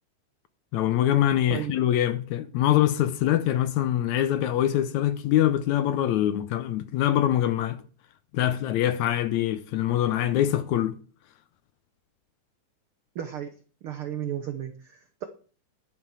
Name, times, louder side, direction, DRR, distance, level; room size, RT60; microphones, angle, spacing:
voice 1, 0.7-7.8 8.3-11.0, left 12 dB, 75° left, 1.9 m, -24 dB
voice 2, 13.1-13.5 13.8-15.2, right 10 dB, 75° right, 1.2 m, -34 dB
11.0 x 10.0 x 4.8 m
omnidirectional pair, 3.7 m